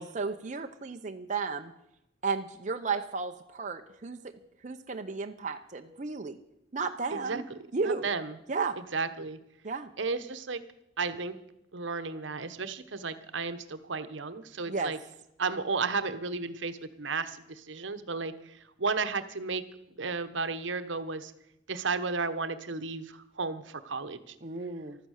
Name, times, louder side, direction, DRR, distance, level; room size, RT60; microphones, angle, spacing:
voice 1, 0.0-1.7 2.2-4.2 4.6-6.4 6.7-7.4 7.7-8.1 8.5-8.8 9.6-9.9 14.7-14.9 24.4-25.0, right 4 dB, 40° right, 5 dB, 0.8 m, -33 dB
voice 2, 7.1-7.4 7.8-8.4 8.8-9.4 10.0-10.6 11.0-11.4 11.7-15.0 15.4-19.6 20.0-21.3 21.7-24.3, right 4 dB, 75° right, 10 dB, 1.1 m, -33 dB
14.5 x 12.5 x 6.5 m, 0.81 s
head